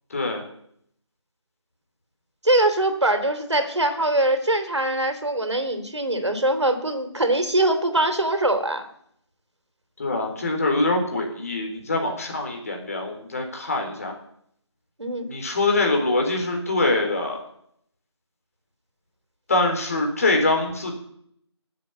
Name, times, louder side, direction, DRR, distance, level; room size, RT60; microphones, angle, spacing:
voice 1, 0.1-0.4 10.0-14.1 15.3-17.4 19.5-20.9, left 2 dB, 30° left, 3 dB, 4.0 m, -24 dB
voice 2, 2.4-8.8 15.0-15.3, right 1 dB, 70° right, 8 dB, 3.6 m, -22 dB
18.0 x 8.4 x 8.4 m, 0.68 s
figure-of-eight pair, 165°, 15 cm